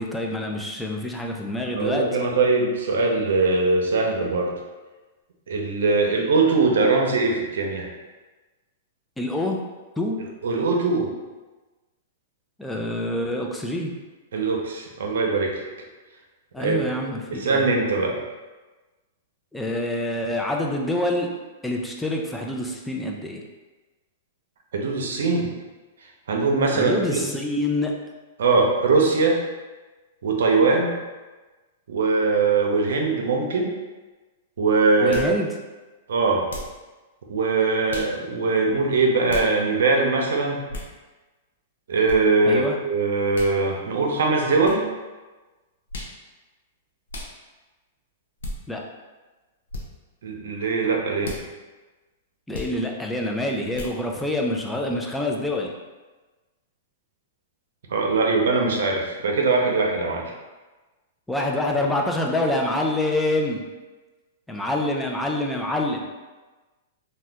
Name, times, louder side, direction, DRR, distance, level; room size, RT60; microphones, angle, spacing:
voice 1, 0.0-2.1 9.2-9.6 10.0-10.2 12.6-13.9 16.5-17.7 19.5-21.3 21.6-23.4 26.7-28.0 35.0-35.5 42.5-42.8 48.7-48.8 52.5-55.7 61.3-63.6 64.5-66.0, left 1 dB, 5° left, 0 dB, 0.4 m, -26 dB
voice 2, 1.7-4.5 5.5-7.9 10.4-11.1 14.3-15.6 16.6-16.8 17.3-18.2 24.7-25.5 26.3-27.2 28.4-29.4 30.2-30.9 31.9-33.7 34.6-35.2 36.1-36.5 37.3-40.6 41.9-44.8 50.2-51.3 57.9-60.2, right 3 dB, 75° right, 0 dB, 0.6 m, -21 dB
sound 1, 35.1-35.3 36.5-36.8 37.9-38.1 39.3-39.5 40.7-40.9 42.1-42.2 43.3-43.5 44.6-44.8 45.9-46.2 47.1-47.3 48.4-48.6 49.7-49.9 51.2-51.4 52.5-52.7 53.7-54.0, left 2 dB, 85° left, 0.6 m, -35 dB
2.8 x 2.2 x 3.3 m, 1.2 s
hypercardioid pair, 130°, 0 cm